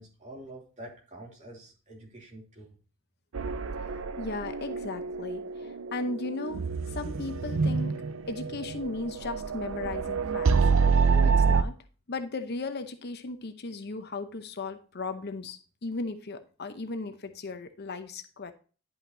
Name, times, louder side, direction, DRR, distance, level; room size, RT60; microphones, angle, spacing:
voice 1, 0.0-2.8, right 1 dB, 35° right, -2 dB, 2.7 m, -47 dB
sound 1, 3.3-11.6, right 5 dB, 70° right, 0.5 m, -27 dB
voice 2, 3.9-6.6 6.9-7.9 8.3-10.8 11.1-11.7 12.1-18.5, left 3 dB, 50° left, 9 dB, 0.7 m, -36 dB
10.5 x 5.7 x 2.7 m, 0.37 s
head